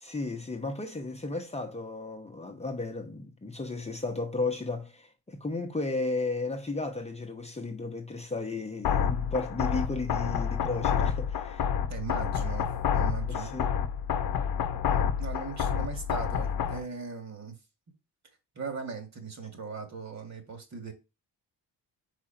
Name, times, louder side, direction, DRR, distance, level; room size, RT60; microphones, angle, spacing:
voice 1, 0.0-11.7 13.3-13.7, left 3 dB, 15° left, 1.0 m, -34 dB
sound 1, 8.8-16.8, left 8 dB, 60° left, 0.8 m, -29 dB
voice 2, 11.9-13.5 14.9-17.5 18.6-20.9, right 5 dB, 40° right, 2.3 m, -39 dB
5.0 x 4.0 x 5.8 m
cardioid pair, 90°, 40 cm